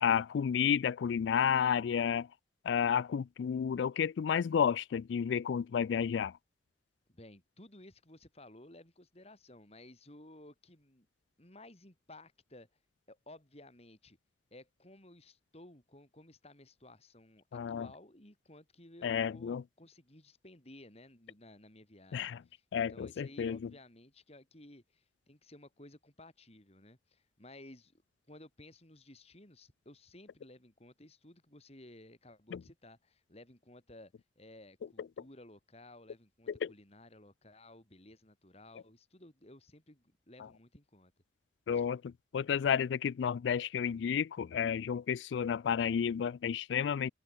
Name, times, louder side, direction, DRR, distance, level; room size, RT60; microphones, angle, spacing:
voice 1, 0.0-2.3 2.7-6.3 17.5-17.9 19.0-19.6 22.1-22.4 22.7-23.6 32.5-32.6 36.6-36.7 41.7-47.1, left 7 dB, 90° left, 0.3 m, -31 dB
voice 2, 7.1-11.1 11.4-12.7 13.1-14.2 14.5-28.0 28.3-41.1 41.7-41.8, left 1 dB, 35° left, 4.4 m, -56 dB
head